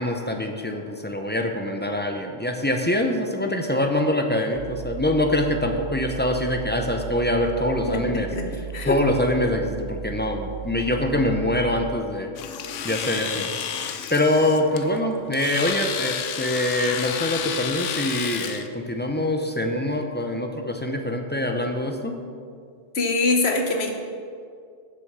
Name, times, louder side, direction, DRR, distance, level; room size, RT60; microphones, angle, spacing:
voice 1, 0.0-8.3 8.8-12.3 12.8-13.5 14.1-22.2, left 1 dB, 15° left, 3 dB, 0.3 m, -24 dB
sound 1, 4.5-12.0, right 8 dB, 90° right, 1.4 m, -36 dB
voice 2, 7.9-9.0 22.9-23.9, left 3 dB, 55° left, 4 dB, 1.2 m, -24 dB
Domestic sounds home sounds, 12.4-18.7, left 8 dB, 75° left, 0.9 m, -31 dB
7.7 x 6.8 x 6.6 m, 2.3 s
omnidirectional pair, 1.3 m